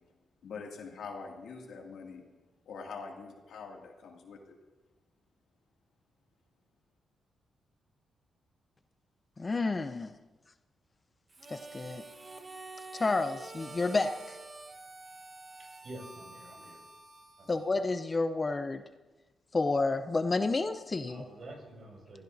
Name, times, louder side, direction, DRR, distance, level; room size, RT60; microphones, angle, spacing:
voice 1, 0.4-2.2 2.7-4.6, left 5 dB, 85° left, 0 dB, 2.4 m, -44 dB
voice 2, 9.4-10.1 11.5-12.0 12.9-14.4 17.5-18.8 19.5-21.2, left 3 dB, 30° left, 9 dB, 0.6 m, -30 dB
Harmonica, 11.3-18.2, right 3 dB, 30° right, 1.2 m, -48 dB
voice 3, 15.8-16.8 17.4-17.5 21.1-22.2, right 1 dB, 55° right, 0 dB, 5.5 m, -47 dB
23.0 x 16.0 x 2.7 m, 1.2 s
cardioid pair, 95°, 0 cm